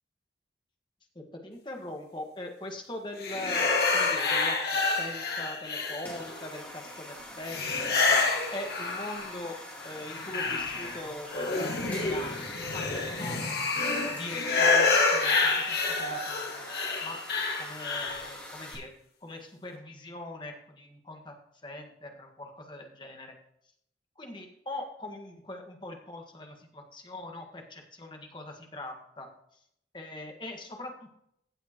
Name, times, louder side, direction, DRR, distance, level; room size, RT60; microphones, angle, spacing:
voice 1, 1.1-3.6 3.9-8.2 8.5-9.6 9.8-13.6 14.1-16.7 17.0-17.2 17.5-18.9 19.2-21.3 21.6-23.3 24.2-29.3 29.9-31.1, left 1 dB, 25° left, 3 dB, 1.6 m, -42 dB
sound 1, 3.2-6.4 7.5-9.5 9.8-18.3, left 3 dB, 60° left, 2.2 m, -28 dB
sound 2, 6.0-18.7, left 1 dB, 10° left, 2.6 m, -44 dB
16.0 x 7.4 x 3.0 m, 0.72 s
head